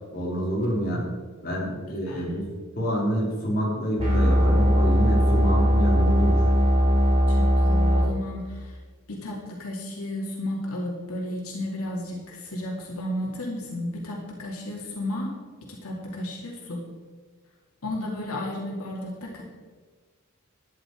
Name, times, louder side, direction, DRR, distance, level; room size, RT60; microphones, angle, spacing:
voice 1, 0.1-1.0 1.4-2.4 2.8-6.4, equal, 40° left, -4 dB, 3.6 m, -27 dB
sound 1, 4.0-8.0, equal, 25° right, 3.6 m, -19 dB
voice 2, 7.3-8.8 9.1-15.3 15.7-16.8 17.8-19.4, left 1 dB, 85° left, -1 dB, 2.5 m, -33 dB
12.5 x 10.0 x 4.6 m, 1.5 s
head